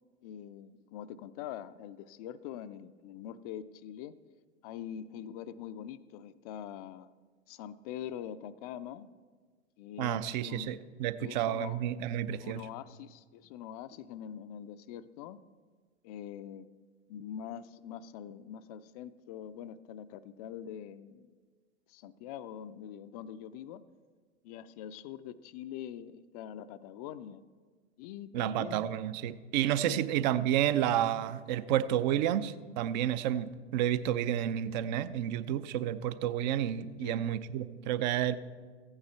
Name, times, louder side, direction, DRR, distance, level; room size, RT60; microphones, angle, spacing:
voice 1, 0.2-4.2 4.6-7.1 7.5-9.1 9.8-10.7 11.2-11.8 12.3-15.4 16.0-16.7 17.1-21.4 21.9-23.8 24.4-27.4 28.0-28.8 29.9-30.0 37.0-37.2, left 9 dB, 35° left, 14 dB, 0.4 m, -44 dB
voice 2, 10.0-12.6 28.3-38.3, right 11 dB, 40° right, 14 dB, 0.5 m, -30 dB
15.0 x 8.8 x 4.4 m, 1.5 s
figure-of-eight pair, 95°, 35 cm